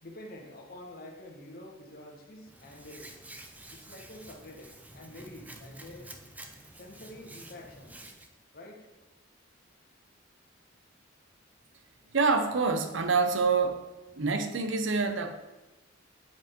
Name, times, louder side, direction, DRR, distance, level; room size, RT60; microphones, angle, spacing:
voice 1, 0.0-3.1 3.7-6.1 6.8-8.1 8.5-8.9, left 1 dB, 50° left, 0 dB, 1.4 m, -47 dB
Hands, 2.5-8.3, right 1 dB, 10° right, 0.5 m, -49 dB
voice 2, 12.1-13.9 14.2-15.4, right 4 dB, 70° right, 7 dB, 0.8 m, -26 dB
8.8 x 4.8 x 4.4 m, 1.1 s
head